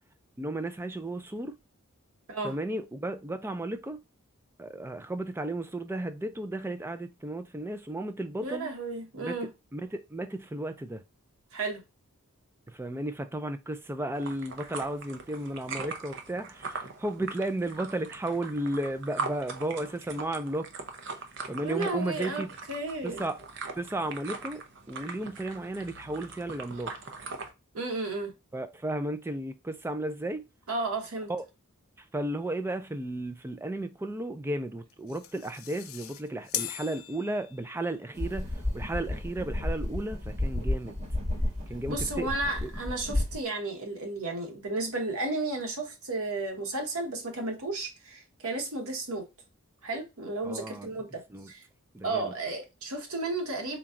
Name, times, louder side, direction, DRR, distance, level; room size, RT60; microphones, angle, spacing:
voice 1, 0.4-1.6 2.4-4.0 4.6-8.7 9.2-9.4 9.7-11.0 12.7-20.7 21.1-21.2 21.5-22.5 23.0-23.4 23.7-24.6 24.9-26.9 28.5-30.4 31.3-31.4 32.1-40.9 41.7-42.3 42.6-42.7 50.4-50.9 51.3-51.5 51.9-52.3, right 1 dB, 10° right, 0.3 m, -34 dB
voice 2, 8.4-9.5 11.5-11.8 21.6-22.4 22.7-23.2 27.7-28.3 30.7-31.3 41.9-49.2 49.8-51.2 51.5-51.6 52.0-53.8, right 2 dB, 75° right, 1.1 m, -33 dB
sound 1, 14.1-27.5, right 4 dB, 55° right, 0.6 m, -41 dB
sound 2, 34.9-37.9, left 12 dB, 65° left, 0.4 m, -39 dB
sound 3, 38.1-43.4, left 1 dB, 30° right, 1.1 m, -32 dB
4.0 x 2.3 x 3.6 m
head